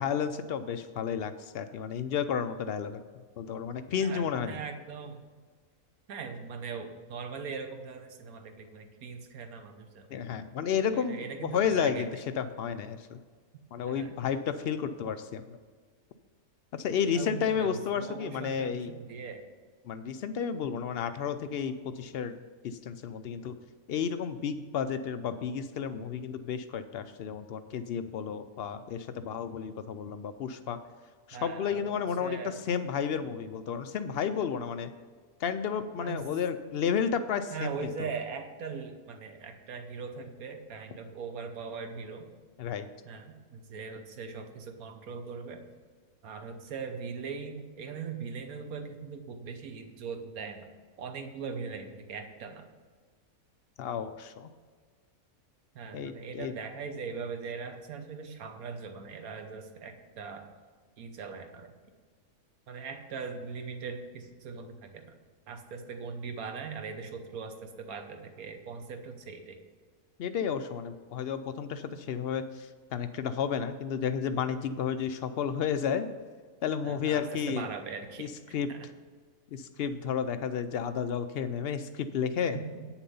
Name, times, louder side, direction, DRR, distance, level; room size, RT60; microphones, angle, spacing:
voice 1, 0.0-3.0 3.4-4.6 10.1-12.1 12.4-13.2 13.7-15.6 16.7-18.9 19.9-22.4 22.6-23.5 23.9-30.8 31.3-34.9 35.4-38.1 42.6-42.9 53.8-54.5 55.9-56.5 70.2-76.1 76.6-77.7 78.2-78.7 79.5-82.6, left 7 dB, 75° left, 10 dB, 0.5 m, -32 dB
voice 2, 4.0-5.2 6.1-10.1 10.9-12.1 13.9-14.1 17.1-19.5 31.3-32.6 36.0-36.2 37.5-42.2 43.0-45.6 46.2-50.7 51.0-52.6 55.7-60.5 61.0-61.7 62.7-65.1 65.5-69.6 76.8-78.3 78.7-78.9 82.4-82.9, right 5 dB, 75° right, 6 dB, 1.4 m, -40 dB
9.0 x 7.1 x 5.5 m, 1.5 s
omnidirectional pair, 1.6 m